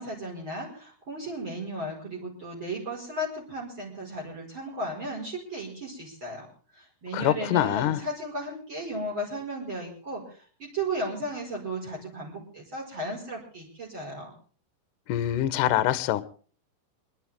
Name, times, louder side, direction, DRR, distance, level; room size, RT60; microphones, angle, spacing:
voice 1, 0.0-6.5 6.8-14.3, right 1 dB, 30° right, 5.8 m, -35 dB
voice 2, 7.1-8.0 15.1-16.2, left 12 dB, 70° left, 2.2 m, -24 dB
27.5 x 11.5 x 3.6 m
omnidirectional pair, 4.8 m